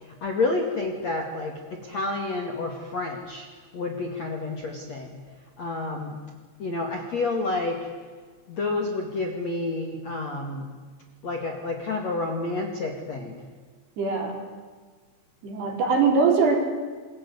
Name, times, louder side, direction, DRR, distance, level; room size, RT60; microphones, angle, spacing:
voice 1, 0.0-3.5 3.7-5.1 5.6-6.2 6.6-7.9 8.5-10.7 11.2-13.4, left 3 dB, 45° left, 3 dB, 2.4 m, -29 dB
voice 2, 14.0-14.4 15.4-16.7, right 4 dB, 55° right, 3 dB, 5.7 m, -22 dB
27.5 x 22.5 x 9.7 m, 1.5 s
omnidirectional pair, 6.0 m